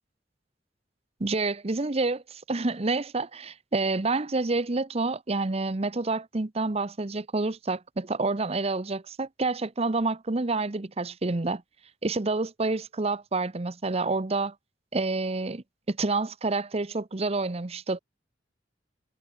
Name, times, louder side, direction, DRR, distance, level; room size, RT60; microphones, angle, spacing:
voice 1, 1.2-11.6 12.0-14.5 14.9-18.0, right 3 dB, 35° right, 0.8 m, -28 dB
head